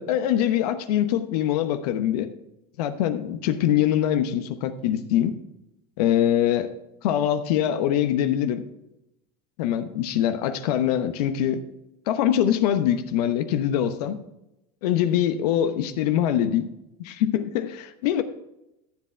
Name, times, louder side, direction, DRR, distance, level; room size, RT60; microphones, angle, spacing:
voice 1, 0.0-2.3 2.8-5.3 6.0-6.7 7.0-8.6 9.6-11.6 12.1-14.2 14.8-16.7 17.0-18.2, left 10 dB, 75° left, 9 dB, 1.0 m, -23 dB
14.0 x 7.7 x 3.4 m, 0.89 s
hypercardioid pair, 90°, 20 cm